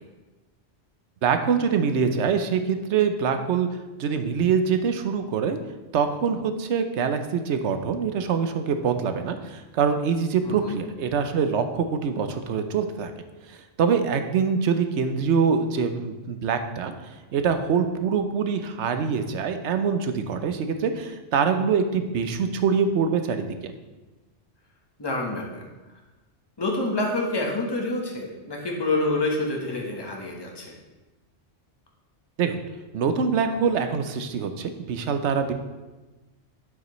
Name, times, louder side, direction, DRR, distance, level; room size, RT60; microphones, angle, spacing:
voice 1, 1.2-3.7 4.0-5.6 5.9-13.1 13.5-23.7 32.4-32.6 32.9-35.5, right 6 dB, 75° right, 8 dB, 1.0 m, -24 dB
voice 2, 10.4-10.8 25.0-25.6 26.6-30.7, left 2 dB, 20° left, 0 dB, 1.2 m, -27 dB
9.5 x 7.3 x 3.1 m, 1.2 s
omnidirectional pair, 1.2 m